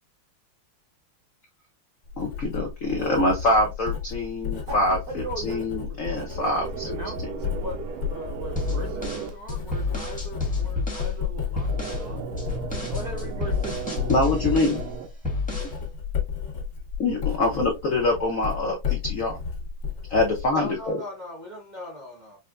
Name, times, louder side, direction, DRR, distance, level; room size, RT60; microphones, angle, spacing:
Writing, 2.0-20.9, left 7 dB, 50° left, 1.8 m, -33 dB
voice 1, 2.2-7.0 14.1-14.8 17.0-19.4 20.1-21.0, left 2 dB, 75° left, 0.7 m, -25 dB
voice 2, 4.7-6.4 6.7-12.3 12.9-14.4, right 2 dB, 65° right, 0.9 m, -39 dB
sound 1, 6.4-9.3 11.7-15.1, right 8 dB, 80° right, 1.5 m, -36 dB
sound 2, 8.6-11.1 11.6-12.1 12.4-14.9 15.2-15.8, left 3 dB, 5° left, 0.9 m, -29 dB
voice 3, 20.5-22.4, left 1 dB, 40° right, 0.6 m, -38 dB
5.3 x 2.2 x 2.4 m
omnidirectional pair, 2.3 m